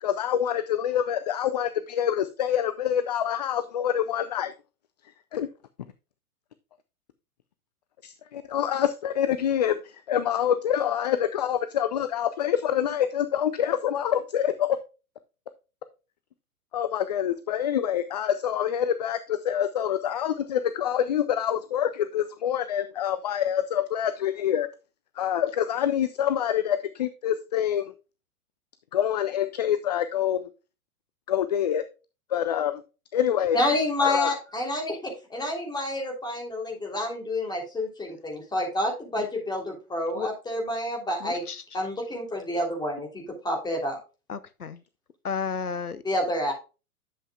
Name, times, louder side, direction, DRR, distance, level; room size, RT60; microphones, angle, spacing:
voice 1, 0.0-4.5 5.3-5.5 8.0-14.7 16.7-24.7 25.2-27.9 28.9-30.5 31.3-31.8 32.3-32.8 33.1-33.6 34.0-34.3, left 10 dB, 30° left, 0.4 m, -26 dB
voice 2, 33.5-41.4 41.7-44.0 46.0-46.5, left 1 dB, 10° left, 3.2 m, -29 dB
voice 3, 41.2-41.6 44.3-44.8 45.2-46.0, left 6 dB, 85° left, 0.8 m, -32 dB
11.0 x 7.6 x 2.4 m
figure-of-eight pair, 105°, 44 cm